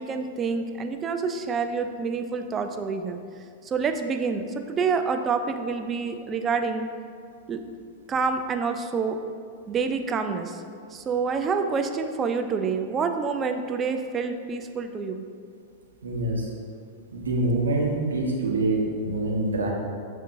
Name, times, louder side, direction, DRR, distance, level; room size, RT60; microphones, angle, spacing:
voice 1, 0.0-3.2 3.6-6.9 7.5-7.6 8.1-9.2 9.7-10.6 10.9-15.2, right 5 dB, 25° right, 6 dB, 0.3 m, -27 dB
voice 2, 16.0-16.5 17.1-19.7, right 2 dB, 75° right, -2 dB, 0.8 m, -25 dB
7.5 x 2.7 x 2.6 m, 2.3 s
figure-of-eight pair, 95°, 0 cm